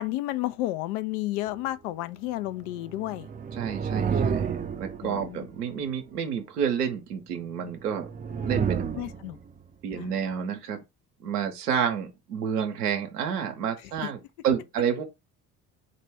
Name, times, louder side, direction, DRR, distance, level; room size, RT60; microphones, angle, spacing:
voice 1, 0.0-3.3 5.0-5.5 8.9-9.4 10.0-10.1, left 16 dB, 70° left, 0.5 m, -31 dB
sound 1, 2.7-5.7 7.8-9.6, right 6 dB, 20° right, 0.4 m, -30 dB
voice 2, 3.5-8.1 8.4-9.0 9.8-10.8 11.2-14.2 14.4-15.0, right 8 dB, 85° right, 0.7 m, -29 dB
4.0 x 2.2 x 3.3 m
hypercardioid pair, 55°, 45 cm